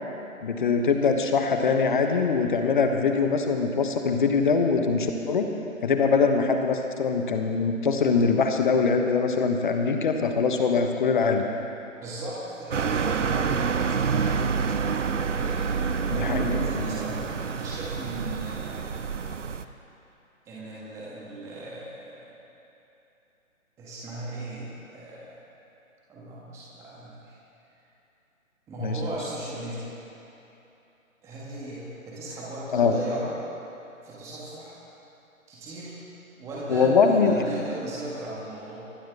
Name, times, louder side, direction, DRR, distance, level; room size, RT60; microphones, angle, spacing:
voice 1, 0.4-5.5 5.8-11.4 16.1-16.5 28.8-29.0 32.7-32.9 36.7-37.3, left 5 dB, 35° left, 5 dB, 1.2 m, -23 dB
voice 2, 12.0-14.4 15.2-19.1 20.4-22.4 23.8-25.4 26.1-27.4 28.7-29.9 31.2-33.3 34.0-34.8 35.5-36.0 36.4-38.8, right 1 dB, 5° right, -7 dB, 1.6 m, -37 dB
sound 1, 12.7-19.6, right 6 dB, 60° right, 0.8 m, -27 dB
24.5 x 11.5 x 3.5 m, 2.9 s
figure-of-eight pair, 145°, 41 cm